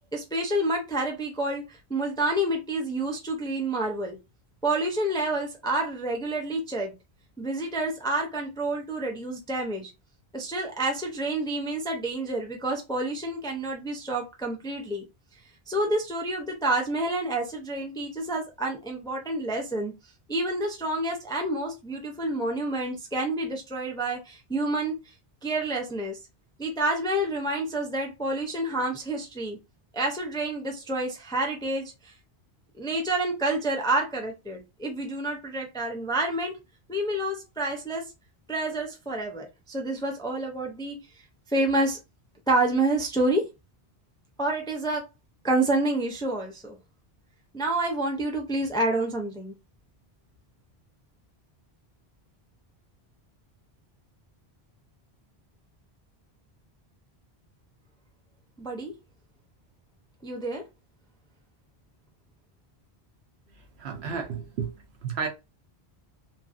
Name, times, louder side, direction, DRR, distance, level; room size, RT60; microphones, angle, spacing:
voice 1, 0.1-4.2 4.6-6.9 7.4-9.9 10.3-15.0 15.7-19.9 20.3-24.9 25.4-26.2 26.6-29.6 29.9-32.1 32.8-36.6 36.9-38.1 38.5-41.0 41.5-42.0 42.5-43.5 44.4-45.0 45.4-46.8 47.5-49.5 58.6-58.9 60.2-60.6, right 2 dB, 5° left, 0.3 m, -28 dB
voice 2, 63.5-65.3, right 6 dB, 85° right, 1.0 m, -33 dB
2.9 x 2.6 x 2.5 m
omnidirectional pair, 1.1 m